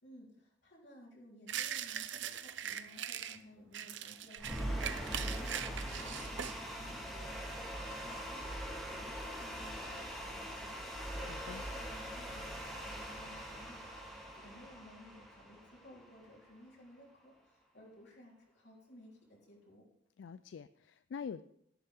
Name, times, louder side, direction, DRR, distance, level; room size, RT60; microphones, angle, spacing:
voice 1, 0.0-14.0 14.3-19.8 21.3-21.4, left 1 dB, 65° left, -3 dB, 3.5 m, -57 dB
sound 1, 1.5-3.4 3.7-6.6, right 9 dB, 90° right, 0.7 m, -41 dB
sound 2, 4.4-16.5, equal, ahead, 2.0 m, -42 dB
voice 2, 11.2-11.6 20.2-21.4, left 6 dB, 85° left, 14 dB, 0.3 m, -45 dB
12.5 x 11.0 x 3.5 m, 0.75 s
head